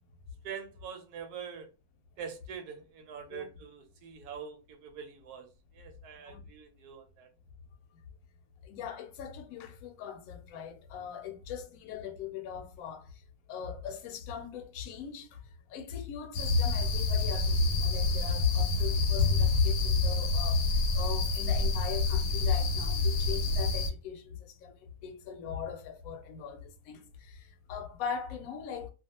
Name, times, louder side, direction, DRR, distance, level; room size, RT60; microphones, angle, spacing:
voice 1, 0.4-1.7 2.2-5.5 5.7-7.3, right 7 dB, 85° right, 1.1 m, -44 dB
voice 2, 8.6-13.2 13.5-15.4 15.7-28.9, left 7 dB, 70° left, 1.0 m, -41 dB
sound 1, 16.3-23.9, left 3 dB, 90° left, 1.1 m, -27 dB
2.4 x 2.4 x 2.7 m
omnidirectional pair, 1.6 m